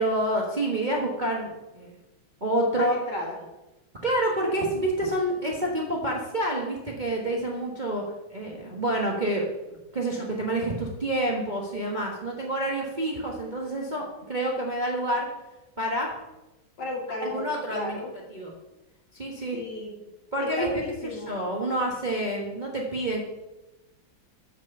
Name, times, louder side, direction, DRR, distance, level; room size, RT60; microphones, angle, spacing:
voice 1, 0.0-1.5 1.7-1.9 2.4-3.0 4.0-8.0 8.3-9.5 9.9-15.3 15.8-16.1 17.2-18.0 18.3-18.5 19.1-19.6 20.3-20.7 21.1-23.2, right 1 dB, 30° right, -2 dB, 1.1 m, -28 dB
voice 2, 2.7-3.4 16.8-18.1 19.5-20.0 20.4-21.4, left 2 dB, 60° left, -1 dB, 2.5 m, -34 dB
7.4 x 6.1 x 6.6 m, 1.0 s
omnidirectional pair, 2.2 m